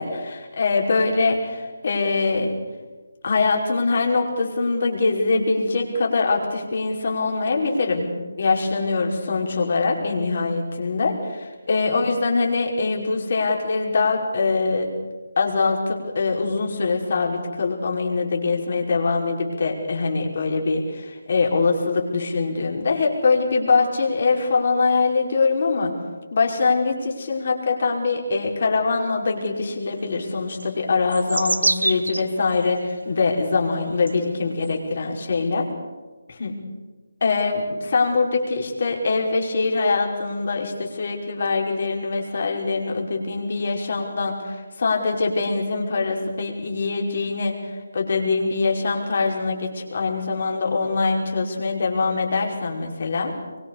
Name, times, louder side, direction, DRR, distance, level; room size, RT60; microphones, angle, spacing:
voice 1, 0.0-2.6 3.2-8.1 8.4-14.9 15.4-26.0 26.3-35.7 36.3-36.6 37.2-53.4, left 4 dB, 50° left, 1 dB, 5.4 m, -23 dB
sound 1, 30.6-32.7 33.4-33.5 34.1-34.7, right 2 dB, 85° right, 1.0 m, -25 dB
25.0 x 24.0 x 6.9 m, 1.3 s
figure-of-eight pair, 160°, 0 cm